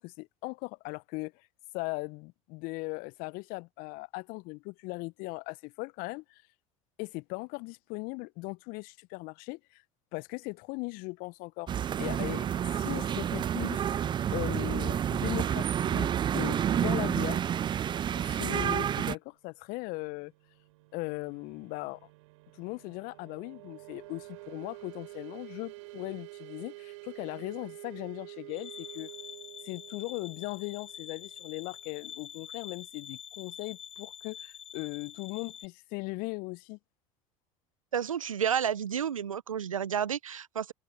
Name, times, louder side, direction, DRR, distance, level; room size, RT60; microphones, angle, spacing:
voice 1, 0.0-1.5 1.7-6.4 7.0-9.8 10.1-11.7 12.0-12.5 12.8-17.4 18.1-20.3 20.9-22.0 22.6-29.1 29.6-36.8, left 26 dB, 60° left, 0.9 m, -38 dB
sound 1, 11.7-19.1, right 9 dB, 30° right, 0.4 m, -29 dB
sound 2, 19.6-32.1, right 24 dB, 70° right, 6.7 m, -49 dB
sound 3, 28.5-35.7, left 8 dB, 35° left, 7.0 m, -46 dB
voice 2, 37.9-40.7, right 8 dB, 85° right, 0.7 m, -31 dB
figure-of-eight pair, 65°, 17 cm